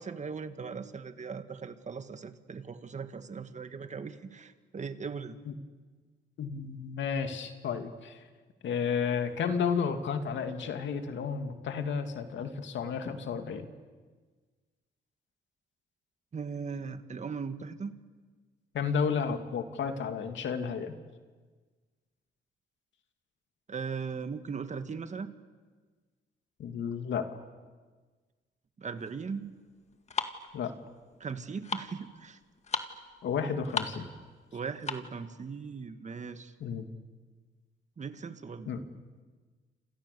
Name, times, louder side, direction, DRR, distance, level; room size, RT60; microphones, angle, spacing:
voice 1, 0.0-5.4 16.3-17.9 23.7-25.3 28.8-29.5 31.2-32.4 34.5-36.6 38.0-38.7, right 5 dB, 35° right, 9 dB, 1.8 m, -39 dB
voice 2, 6.4-8.2 8.6-13.7 18.7-21.0 26.6-27.2 30.5-30.7 33.2-34.1 36.6-36.8 38.7-38.8, left 6 dB, 70° left, 7 dB, 2.5 m, -32 dB
sound 1, 29.0-35.2, left 4 dB, 35° left, 2.0 m, -38 dB
28.5 x 27.5 x 6.9 m, 1.4 s
cardioid pair, 90°, 20 cm